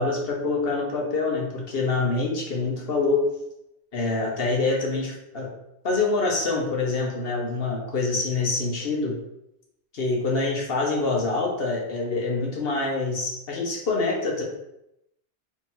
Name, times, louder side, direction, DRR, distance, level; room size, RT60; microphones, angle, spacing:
voice 1, 0.0-3.3 3.9-5.5 5.8-9.2 9.9-14.4, left 3 dB, 60° left, -1 dB, 1.2 m, -25 dB
3.5 x 2.9 x 4.3 m, 0.83 s
omnidirectional pair, 1.1 m